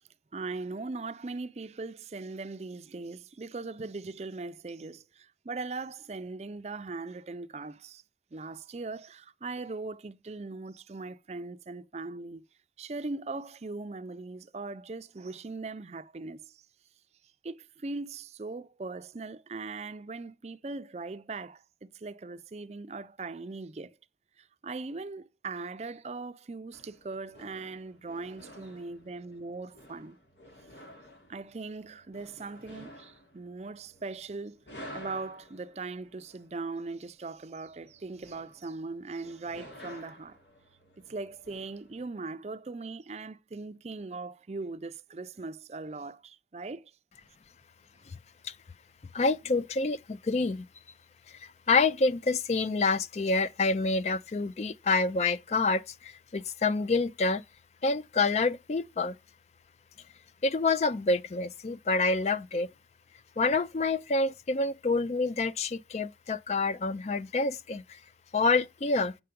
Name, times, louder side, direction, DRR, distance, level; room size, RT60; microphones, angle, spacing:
voice 1, 0.3-8.0 8.3-12.4 12.8-16.6 17.4-24.0 24.4-30.2 31.3-34.6 34.9-40.4 41.1-46.9, right 3 dB, 35° right, 0.4 m, -40 dB
sound 1, 26.7-42.1, equal, 75° left, 2.8 m, -52 dB
voice 2, 49.1-50.7 51.3-57.4 57.8-59.2 60.4-62.7 63.4-68.0 68.3-69.1, left 3 dB, 40° left, 0.4 m, -27 dB
8.4 x 5.7 x 5.2 m
head